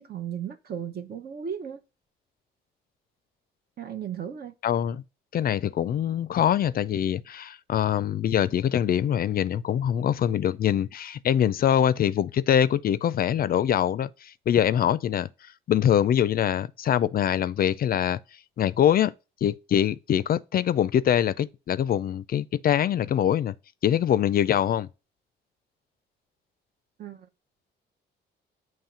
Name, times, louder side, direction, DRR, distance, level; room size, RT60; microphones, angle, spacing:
voice 1, 0.0-1.8 3.8-4.5 27.0-27.3, right 8 dB, 50° right, 0.8 m, -35 dB
voice 2, 4.6-5.0 5.3-15.3 15.7-18.2 18.6-19.1 19.4-23.5 23.8-24.9, left 10 dB, 50° left, 0.4 m, -24 dB
7.3 x 3.1 x 5.6 m
cardioid pair, 90°, 20 cm